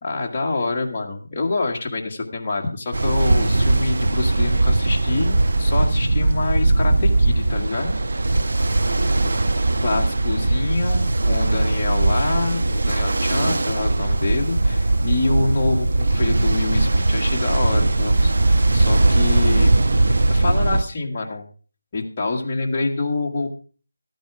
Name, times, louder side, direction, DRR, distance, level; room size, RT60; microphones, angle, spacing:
voice 1, 0.0-7.9 9.2-9.3 9.8-19.8 20.1-21.5 21.9-23.5, left 3 dB, 25° left, -2 dB, 1.8 m, -26 dB
Ocean, 2.9-20.8, right 2 dB, 60° right, 1.0 m, -19 dB
13.5 x 9.2 x 4.8 m, 0.38 s
figure-of-eight pair, 175°, 0 cm